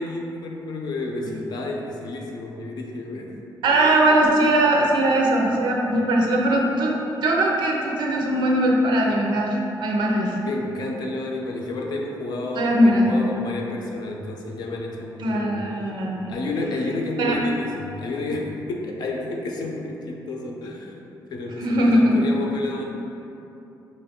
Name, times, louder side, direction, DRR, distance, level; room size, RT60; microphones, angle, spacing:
voice 1, 0.0-3.3 4.1-4.2 10.5-15.6 16.3-20.9 21.3-22.8, left 2 dB, 65° left, 0 dB, 0.5 m, -30 dB
voice 2, 3.6-6.9 7.2-10.4 12.5-13.2 15.2-16.3 17.2-17.4 21.6-22.3, right 1 dB, 85° right, -1 dB, 0.6 m, -20 dB
5.0 x 2.5 x 3.7 m, 2.9 s
wide cardioid pair, 145°, 8 cm